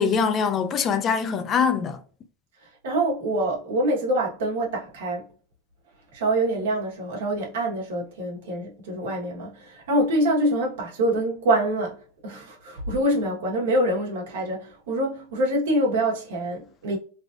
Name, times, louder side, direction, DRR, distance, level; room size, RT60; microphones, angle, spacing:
voice 1, 0.0-2.0, left 6 dB, 30° left, 0.4 m, -23 dB
voice 2, 2.6-5.3 6.1-17.0, right 1 dB, 90° right, 1.2 m, -25 dB
3.3 x 2.5 x 2.4 m
supercardioid pair, 140°, 0 cm